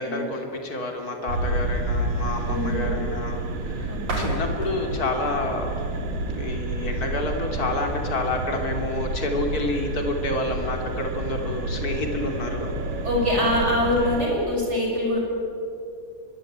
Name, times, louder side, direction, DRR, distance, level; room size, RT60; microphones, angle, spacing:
voice 1, 0.0-3.4 3.6-5.7 6.3-12.7, left 2 dB, 30° left, 3 dB, 3.2 m, -29 dB
sound 1, 1.3-14.2, right 2 dB, 80° right, 3.8 m, -29 dB
voice 2, 2.5-3.0 3.9-4.4 13.0-15.2, left 1 dB, 20° right, -2 dB, 7.4 m, -24 dB
sound 2, 4.1-6.8, right 1 dB, 55° right, 5.8 m, -34 dB
24.5 x 22.0 x 8.9 m, 2.7 s
omnidirectional pair, 3.7 m